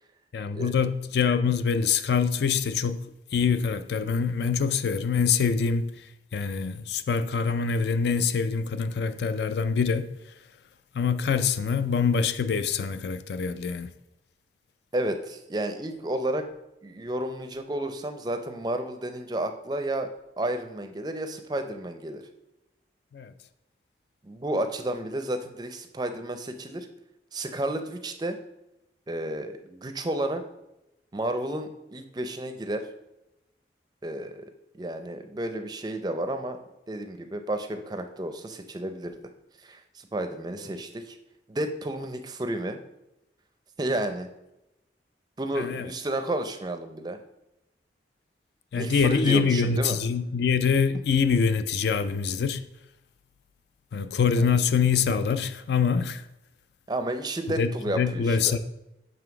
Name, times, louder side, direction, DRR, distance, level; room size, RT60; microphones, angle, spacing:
voice 1, 0.3-3.0 3.3-6.0 6.3-10.2 10.9-13.9 23.1-23.3 40.6-40.7 45.6-45.9 48.7-52.6 53.9-56.2 57.6-58.6, left 6 dB, 65° left, 0.4 m, -25 dB
voice 2, 14.9-16.5 16.8-20.1 20.4-22.2 24.2-26.9 27.3-28.4 29.1-30.4 31.1-32.9 34.0-36.6 36.9-39.1 39.6-41.2 41.5-42.8 43.8-44.3 45.4-47.2 48.8-50.0 54.4-54.5 56.9-58.6, right 1 dB, 20° right, 0.4 m, -31 dB
7.0 x 3.3 x 5.8 m
head